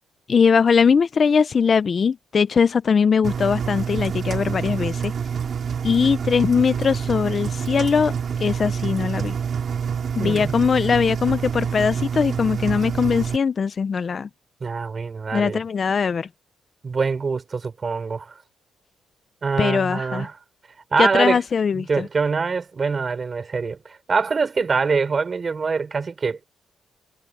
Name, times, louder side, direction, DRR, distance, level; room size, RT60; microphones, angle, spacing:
voice 1, 0.3-5.1 5.8-8.1 8.4-9.3 10.2-14.3 15.3-16.3 19.6-20.3 21.0-22.1, left 6 dB, 45° left, 0.7 m, -20 dB
Engine, 3.2-13.4, right 7 dB, 50° right, 5.5 m, -27 dB
voice 2, 10.2-10.5 14.6-15.6 16.8-18.3 19.4-20.3 20.9-21.4 21.7-26.4, right 5 dB, 35° right, 5.6 m, -24 dB
cardioid pair, 90°, 0 cm